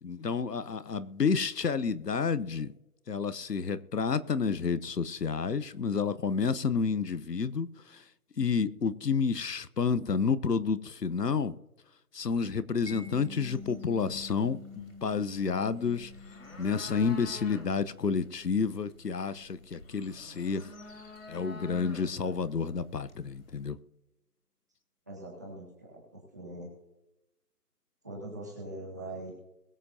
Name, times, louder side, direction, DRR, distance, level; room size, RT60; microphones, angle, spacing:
voice 1, 0.0-2.7 3.1-8.0 8.4-11.5 12.1-16.1 16.6-20.7 21.3-23.8, left 5 dB, 85° left, 1.0 m, -30 dB
sound 1, 12.8-23.7, left 2 dB, 55° left, 3.0 m, -49 dB
Mallet percussion, 12.9-19.6, left 3 dB, 75° right, 2.7 m, -48 dB
voice 2, 25.1-26.7 28.0-29.3, right 1 dB, 10° right, 1.9 m, -42 dB
22.0 x 7.7 x 2.8 m
figure-of-eight pair, 175°, 47 cm